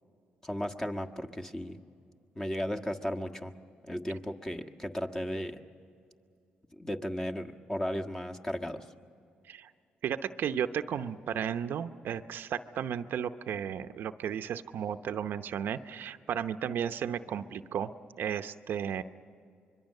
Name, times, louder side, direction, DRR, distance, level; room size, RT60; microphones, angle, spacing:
voice 1, 0.4-1.8 2.3-3.5 3.9-5.6 6.7-8.8, equal, 15° left, 3 dB, 1.5 m, -35 dB
voice 2, 10.0-17.9 18.2-19.0, right 8 dB, 70° right, 9 dB, 0.7 m, -34 dB
25.5 x 23.0 x 6.6 m, 2.5 s
supercardioid pair, 70°, 4 cm